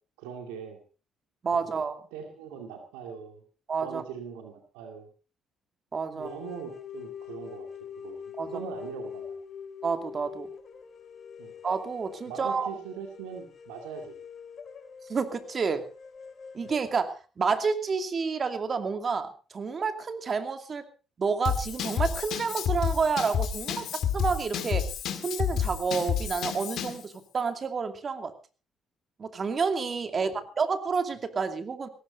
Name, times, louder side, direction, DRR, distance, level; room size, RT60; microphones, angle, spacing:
voice 1, 0.2-0.8 1.5-1.7 2.1-3.4 3.8-5.1 6.1-7.7 8.0-9.4 11.4-11.5 12.3-14.2 16.6-16.7 30.1-30.4, right 7 dB, 85° right, 5 dB, 2.3 m, -41 dB
voice 2, 1.4-2.0 3.7-4.0 5.9-6.4 8.4-8.5 9.8-10.5 11.6-12.7 15.1-15.8 16.5-20.8 21.2-23.8 24.1-24.8 25.2-28.3 29.2-30.3 30.6-31.9, right 5 dB, 45° right, 8 dB, 2.5 m, -29 dB
sound 1, 6.2-17.0, left 7 dB, 50° left, 2.8 m, -44 dB
Drum kit / Drum, 21.4-27.0, left 8 dB, 65° left, 2.0 m, -30 dB
17.5 x 16.5 x 4.0 m, 0.35 s
hypercardioid pair, 55°, 0 cm